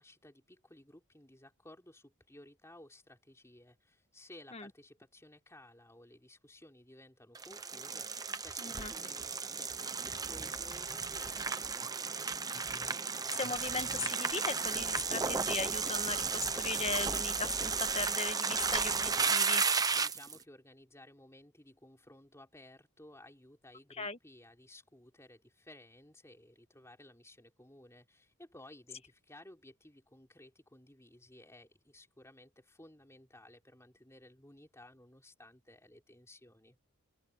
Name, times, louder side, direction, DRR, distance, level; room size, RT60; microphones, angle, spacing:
voice 1, 0.0-12.4 20.0-36.8, left 1 dB, 15° left, 4.2 m, -57 dB
sound 1, 7.4-20.4, right 5 dB, 15° right, 0.8 m, -34 dB
voice 2, 8.6-8.9 13.3-19.6 24.0-24.2, left 4 dB, 30° left, 1.4 m, -38 dB
open air
head